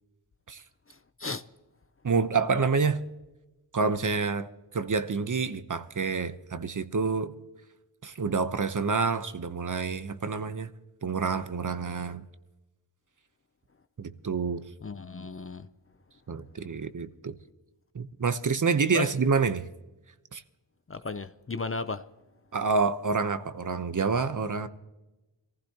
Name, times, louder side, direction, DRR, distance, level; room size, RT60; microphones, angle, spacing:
voice 1, 2.0-3.0 3.7-4.5 4.7-7.3 8.0-10.7 11.0-12.2 14.0-14.6 16.3-17.3 17.9-19.7 20.3-20.4 22.5-24.7, right 5 dB, 45° right, 0.9 m, -28 dB
voice 2, 14.8-15.7 18.9-19.0 20.9-22.0, left 3 dB, 30° left, 0.6 m, -34 dB
26.5 x 15.5 x 2.9 m
wide cardioid pair, 95°, 45 cm